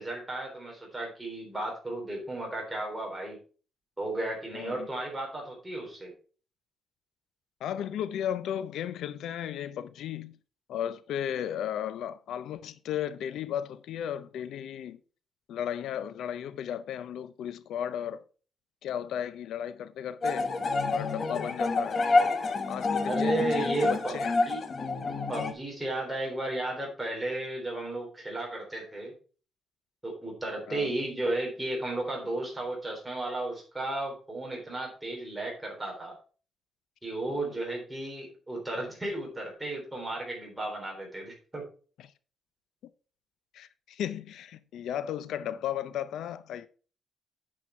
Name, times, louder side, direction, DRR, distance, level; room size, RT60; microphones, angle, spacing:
voice 1, 0.0-3.4 4.0-6.1 23.1-24.1 24.5-24.6 25.3-29.1 30.0-36.1 37.0-41.6, right 2 dB, 10° right, 3.5 m, -34 dB
voice 2, 4.5-4.9 7.6-10.4 10.7-15.0 15.5-18.2 18.8-20.5 20.8-22.0 22.7-24.5 30.7-30.9 42.0-42.1 43.5-46.7, left 10 dB, 90° left, 0.5 m, -35 dB
sound 1, 20.2-25.5, left 3 dB, 35° left, 1.0 m, -28 dB
8.6 x 6.1 x 4.4 m
cardioid pair, 160°, 0 cm